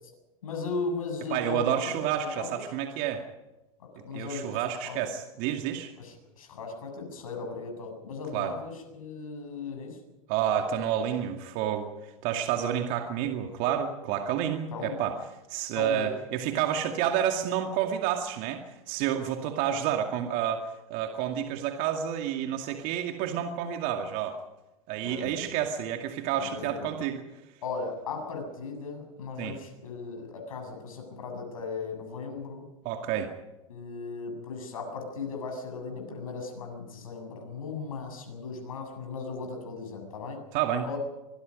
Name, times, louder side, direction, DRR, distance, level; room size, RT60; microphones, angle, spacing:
voice 1, 0.4-2.6 3.8-5.1 6.0-10.0 14.7-15.1 15.7-16.1 25.0-25.6 26.4-26.9 27.6-32.7 33.7-40.4 40.8-41.0, left 4 dB, 75° left, 3 dB, 7.6 m, -37 dB
voice 2, 1.3-3.2 4.1-5.9 8.3-8.5 10.3-15.2 15.5-24.4 24.9-27.2 29.4-29.6 32.8-33.3 40.5-40.9, right 9 dB, 50° right, 4 dB, 2.3 m, -29 dB
25.0 x 21.5 x 5.4 m, 1.0 s
hypercardioid pair, 95°, 18 cm